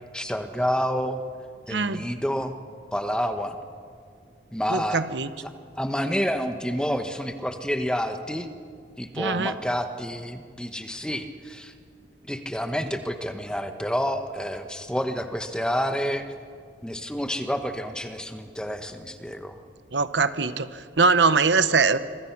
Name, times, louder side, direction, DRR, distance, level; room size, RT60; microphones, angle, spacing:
voice 1, 0.1-1.2 1.7-2.5 2.9-3.6 4.5-5.0 5.4-8.5 9.0-11.7 12.3-16.3 16.8-19.6 20.4-20.5, equal, 5° left, 7 dB, 1.1 m, -29 dB
voice 2, 1.7-2.1 4.7-5.3 9.2-9.5 19.9-22.0, right 4 dB, 75° right, 12 dB, 0.9 m, -22 dB
26.0 x 24.5 x 6.0 m, 2.2 s
head